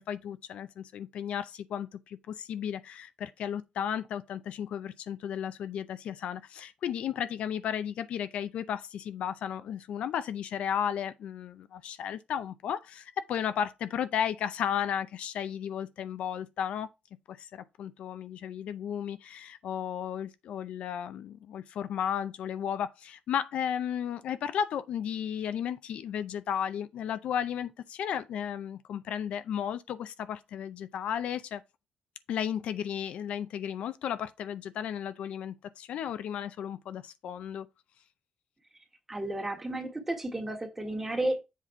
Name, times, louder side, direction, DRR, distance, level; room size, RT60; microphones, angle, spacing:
voice 1, 0.0-16.9 17.3-31.6 32.3-37.7, left 9 dB, 70° left, 0.5 m, -34 dB
voice 2, 39.1-41.4, right 1 dB, 15° right, 1.6 m, -32 dB
7.5 x 4.1 x 4.4 m
cardioid pair, 160°, 2 cm